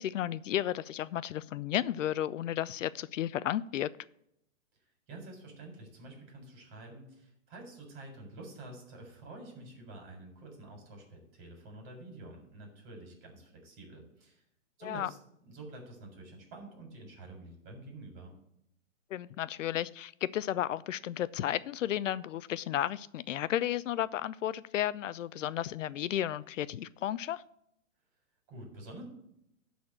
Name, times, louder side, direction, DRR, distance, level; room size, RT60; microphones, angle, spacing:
voice 1, 0.0-3.9 14.8-15.1 19.1-27.4, left 12 dB, 70° left, 17 dB, 0.5 m, -33 dB
voice 2, 5.1-14.4 14.8-15.2 15.4-18.3 28.5-29.0, right 2 dB, 35° right, 2 dB, 4.2 m, -48 dB
11.5 x 4.2 x 7.7 m, 0.75 s
hypercardioid pair, 150°, 40 cm